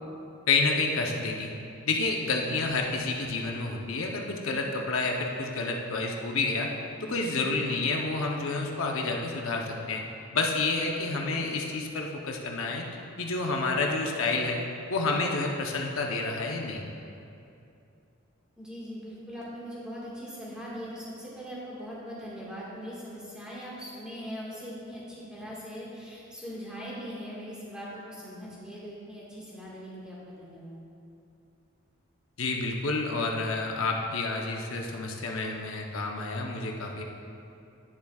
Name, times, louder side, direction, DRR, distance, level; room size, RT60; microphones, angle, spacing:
voice 1, 0.5-1.5 1.9-6.7 7.1-10.0 10.3-12.8 13.2-14.6 14.9-16.8 32.4-37.0, left 3 dB, 75° left, 0 dB, 0.8 m, -29 dB
voice 2, 7.0-7.5 18.6-30.8, equal, 5° right, -7 dB, 1.7 m, -41 dB
10.5 x 10.0 x 2.4 m, 2.7 s
head